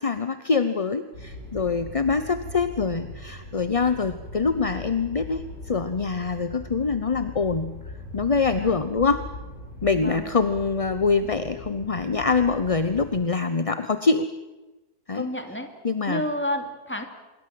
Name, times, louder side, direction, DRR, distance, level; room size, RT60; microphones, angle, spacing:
voice 1, 0.0-7.7 8.1-9.2 9.8-14.3 15.1-15.3 15.8-16.2, left 4 dB, 30° left, 11 dB, 0.8 m, -24 dB
sound 1, 1.1-13.1, left 1 dB, 80° left, 7.6 m, -40 dB
voice 2, 9.9-10.3 15.1-15.8 16.1-17.0, left 1 dB, 5° left, 6 dB, 2.7 m, -30 dB
26.5 x 22.5 x 7.8 m, 1.1 s
omnidirectional pair, 1.6 m